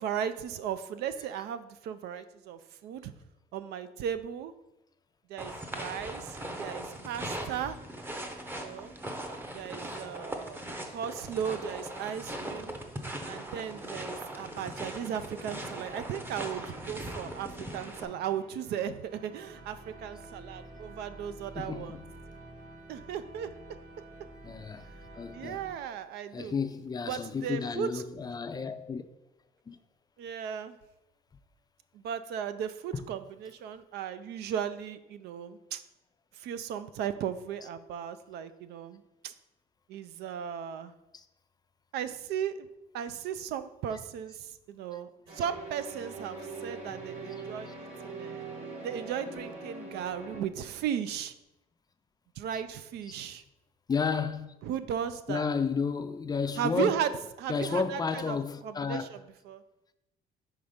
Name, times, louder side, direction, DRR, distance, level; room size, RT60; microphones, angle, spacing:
voice 1, 0.0-3.1 3.5-4.5 5.3-7.8 8.5-8.9 9.5-10.6 10.9-12.8 13.2-22.0 22.9-23.5 25.3-26.5 27.1-28.0 30.2-30.8 31.9-35.8 36.4-39.3 39.9-40.9 41.9-42.7 42.9-48.4 48.8-51.3 52.4-53.4 54.6-55.5 56.6-57.1 57.4-58.4 58.6-59.2 59.5-59.6, right 9 dB, 75° right, 0.4 m, -36 dB
sound 1, 5.4-18.0, right 1 dB, 10° right, 0.7 m, -40 dB
sound 2, 13.3-25.8, right 2 dB, 60° right, 1.4 m, -50 dB
voice 2, 21.6-22.1 24.4-24.9 25.1-25.6 26.3-29.0 29.7-29.8 32.9-33.1 37.6-37.7 41.1-41.3 52.5-52.6 53.0-53.1 53.9-54.5 55.3-57.0 57.5-59.1, left 5 dB, 25° left, 0.4 m, -32 dB
sound 3, 45.3-50.4, right 3 dB, 40° right, 1.7 m, -42 dB
5.6 x 3.5 x 5.0 m
cardioid pair, 110°, 17 cm